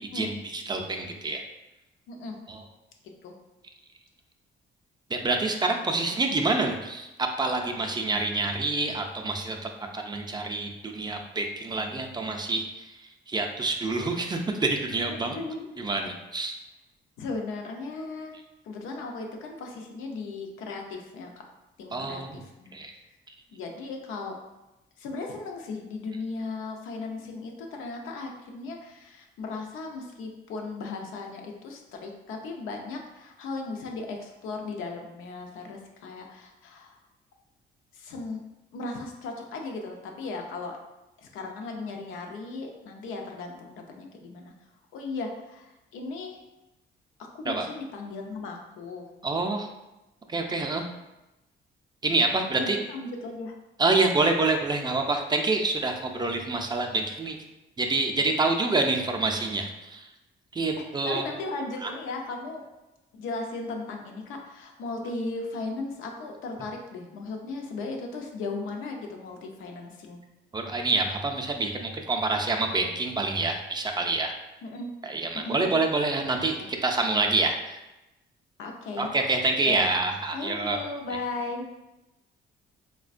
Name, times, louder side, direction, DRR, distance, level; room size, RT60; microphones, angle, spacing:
voice 1, 0.1-1.4 2.5-2.6 5.1-13.0 13.3-15.4 15.8-16.6 21.9-22.4 22.7-22.9 47.5-47.7 49.2-49.7 50.3-50.8 52.0-52.8 53.8-57.4 57.8-60.1 60.5-61.2 61.8-61.9 70.5-74.3 75.0-77.8 79.0-80.8, right 3 dB, 20° right, 3 dB, 0.4 m, -27 dB
voice 2, 3.0-3.3 15.1-15.8 17.2-18.3 18.6-21.3 21.8-22.8 23.5-24.3 25.0-37.0 37.9-38.4 38.7-40.8 41.2-44.5 44.9-46.4 47.2-49.1 52.6-53.5 61.0-62.7 63.1-70.2 74.6-74.9 75.3-75.7 76.4-76.7 78.6-79.1 79.7-79.9 80.3-81.7, left 3 dB, 85° left, 2 dB, 0.5 m, -36 dB
4.0 x 2.1 x 2.4 m, 0.99 s
cardioid pair, 90°, 20 cm